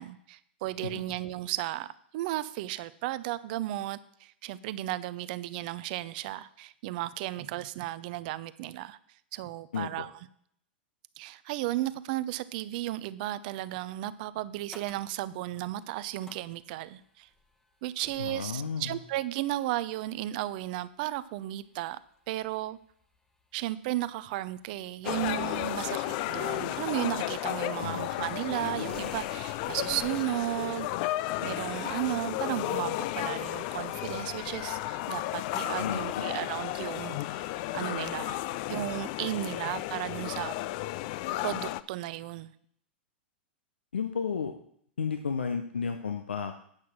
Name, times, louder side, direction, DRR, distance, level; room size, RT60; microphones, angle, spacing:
voice 1, 0.0-9.0 9.3-10.1 11.2-17.3 17.8-22.0 22.3-22.8 23.5-30.9 31.4-37.5 37.7-38.4 38.7-40.5 41.4-42.5, right 15 dB, 50° right, 16 dB, 0.6 m, -34 dB
voice 2, 9.7-10.0 18.2-19.0 27.8-28.3 35.8-36.2 43.9-44.5 45.0-46.6, left 6 dB, 80° left, 8 dB, 0.7 m, -33 dB
sound 1, 14.2-14.3 14.7-15.1 15.6-15.8 16.2-16.8 17.3-17.6 18.0-18.7 19.6-19.7 20.6-20.7 21.1-21.2 21.9-22.0 22.3-24.1 24.5-30.2, left 1 dB, 10° left, 1.1 m, -49 dB
sound 2, 25.0-41.8, left 16 dB, 50° left, 0.4 m, -33 dB
9.0 x 5.8 x 6.1 m, 0.65 s
hypercardioid pair, 105°, 6 cm